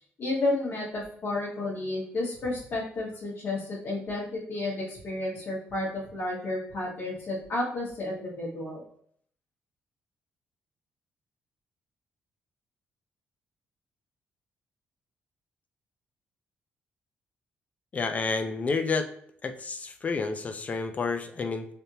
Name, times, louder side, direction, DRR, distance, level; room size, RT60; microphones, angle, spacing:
voice 1, 0.2-8.8, left 2 dB, 55° left, -4 dB, 1.5 m, -31 dB
voice 2, 17.9-19.1 19.4-21.7, left 4 dB, 35° left, 8 dB, 0.4 m, -30 dB
3.4 x 2.8 x 2.7 m, 0.62 s
cardioid pair, 115°, 4 cm